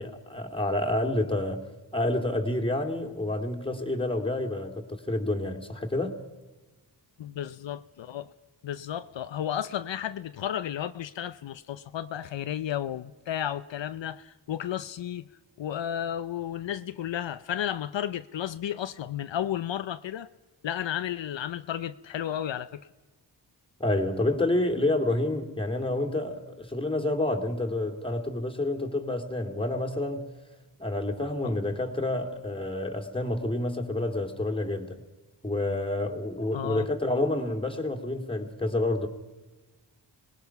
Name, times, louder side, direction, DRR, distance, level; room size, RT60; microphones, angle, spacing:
voice 1, 0.0-1.6 1.9-6.2 23.8-30.3 30.8-35.0 35.4-39.1, left 2 dB, 10° left, 2.5 m, -29 dB
voice 2, 7.2-8.3 8.6-15.3 15.6-20.3 20.6-22.8 31.4-31.5 36.5-36.9, left 10 dB, 75° left, 0.7 m, -33 dB
25.5 x 19.5 x 5.9 m
wide cardioid pair, 75°, 44 cm